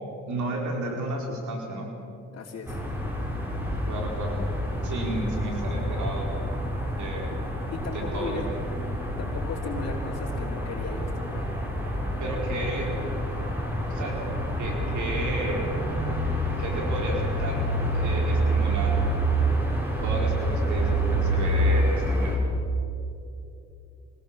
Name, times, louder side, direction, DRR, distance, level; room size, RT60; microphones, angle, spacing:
voice 1, 0.3-1.9 3.9-4.4 4.8-6.3 6.9-7.3 7.9-8.4 12.2-13.0 13.8-14.2 14.6-15.6 16.6-17.6 17.9-19.0 20.0-22.4, right 2 dB, 70° right, 0 dB, 4.6 m, -32 dB
voice 2, 2.3-2.8 7.7-8.5 9.2-11.7, left 4 dB, 50° left, -4 dB, 3.2 m, -36 dB
sound 1, 2.7-22.4, right 1 dB, 5° right, 5.9 m, -27 dB
24.5 x 19.0 x 7.4 m, 2.8 s
cardioid pair, 90°, 30 cm